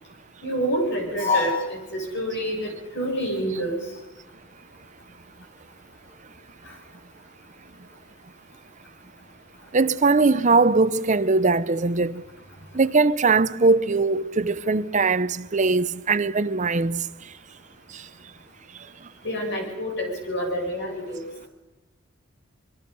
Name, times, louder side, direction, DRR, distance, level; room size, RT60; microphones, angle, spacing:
voice 1, 0.4-3.8 19.2-21.2, equal, 55° left, 7.3 m, -27 dB
voice 2, 9.7-12.2 12.7-17.1 17.9-18.0, right 3 dB, 35° right, 0.7 m, -21 dB
25.0 x 23.0 x 5.5 m
head